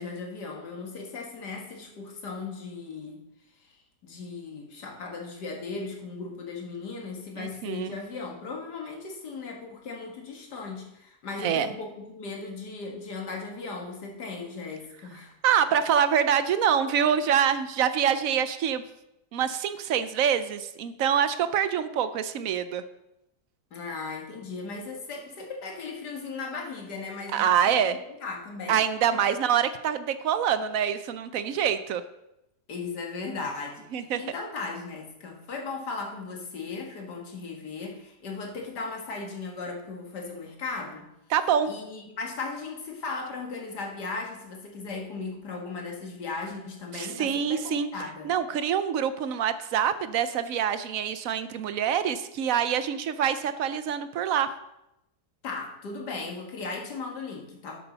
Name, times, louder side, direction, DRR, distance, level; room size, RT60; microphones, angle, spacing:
voice 1, 0.0-3.2 3.6-3.7 4.0-15.3 23.7-27.8 28.2-28.8 29.1-29.2 32.7-41.1 41.7-48.3 55.4-57.8, left 4 dB, 75° left, 1 dB, 2.2 m, -37 dB
voice 2, 7.4-8.0 11.4-11.7 15.4-18.8 19.3-22.8 27.3-28.0 28.7-32.0 33.9-34.2 41.3-41.7 46.9-47.9 48.2-54.5, right 8 dB, 65° right, 12 dB, 1.0 m, -25 dB
11.0 x 8.5 x 4.1 m, 0.86 s
omnidirectional pair, 1.8 m